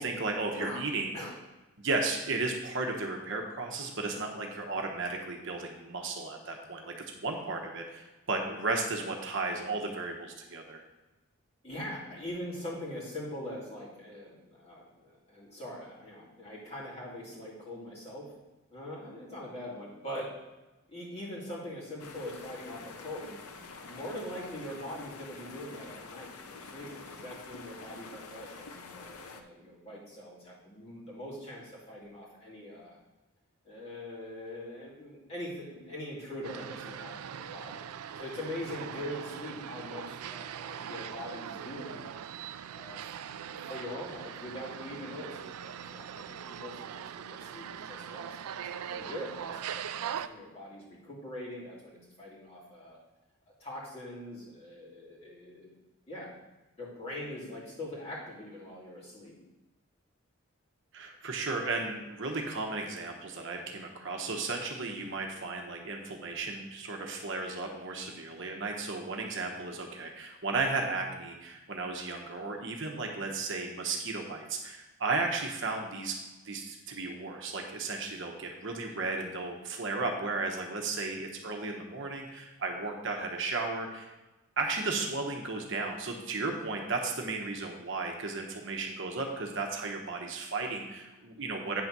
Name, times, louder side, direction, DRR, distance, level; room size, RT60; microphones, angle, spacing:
voice 1, 0.0-1.1 1.8-10.8 60.9-76.1 76.4-84.1 84.6-91.8, right 3 dB, 55° right, 2 dB, 1.0 m, -34 dB
voice 2, 11.6-18.3 18.7-20.3 20.9-33.0 33.6-37.9 38.1-42.1 42.7-43.0 43.4-53.0 53.6-55.7 56.1-56.3 56.8-59.3, left 1 dB, 25° left, -6 dB, 2.5 m, -42 dB
sound 1, 22.0-29.4, left 4 dB, 80° left, 0.7 m, -47 dB
sound 2, 36.4-50.3, right 8 dB, 85° right, 0.4 m, -41 dB
9.2 x 4.0 x 6.0 m, 1.1 s
head